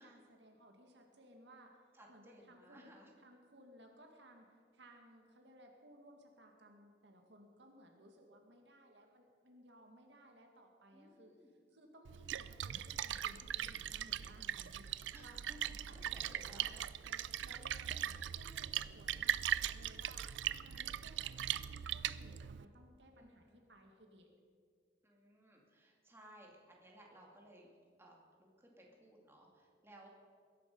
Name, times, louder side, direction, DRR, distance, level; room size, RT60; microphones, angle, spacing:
voice 1, 0.0-1.8 2.1-11.3 11.7-15.4 15.6-16.7 17.0-24.3, right 1 dB, 70° right, 3 dB, 2.0 m, -61 dB
voice 2, 1.9-3.1 10.9-11.5 15.1-16.8 23.2-23.7 25.0-27.7 28.0-30.1, right 1 dB, 15° right, -2 dB, 2.4 m, -60 dB
Splash splatter, 12.0-22.6, right 10 dB, 90° right, 0.4 m, -40 dB
21.0 x 11.0 x 5.3 m, 2.1 s
head